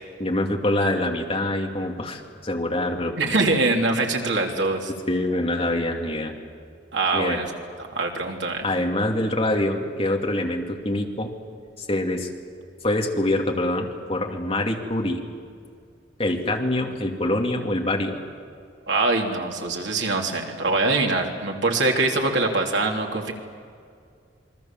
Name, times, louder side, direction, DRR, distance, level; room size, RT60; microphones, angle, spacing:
voice 1, 0.2-3.3 5.1-6.3 7.1-7.4 8.6-11.3 11.8-12.3 12.8-15.2 16.2-18.2, left 1 dB, 30° left, 1 dB, 2.6 m, -25 dB
voice 2, 3.2-4.9 6.9-7.5 7.9-8.6 18.9-23.3, right 3 dB, 75° right, 1 dB, 3.1 m, -23 dB
28.0 x 23.0 x 7.5 m, 2.2 s
head